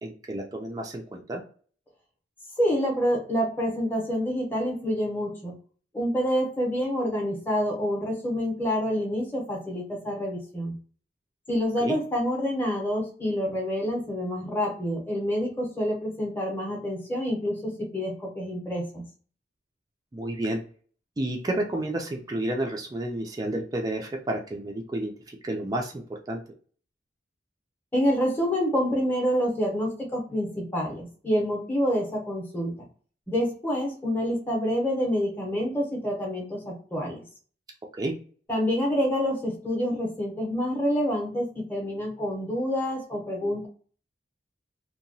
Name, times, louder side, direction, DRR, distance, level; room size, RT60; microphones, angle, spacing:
voice 1, 0.0-1.4 11.8-11.9 20.1-20.6 21.2-26.4 38.0-38.1, right 1 dB, 20° right, 1 dB, 0.4 m, -31 dB
voice 2, 2.6-5.5 5.9-10.7 11.5-19.0 27.9-32.7 33.3-37.2 38.5-43.7, equal, 10° left, -1 dB, 0.7 m, -27 dB
2.8 x 2.2 x 2.6 m, 0.42 s
head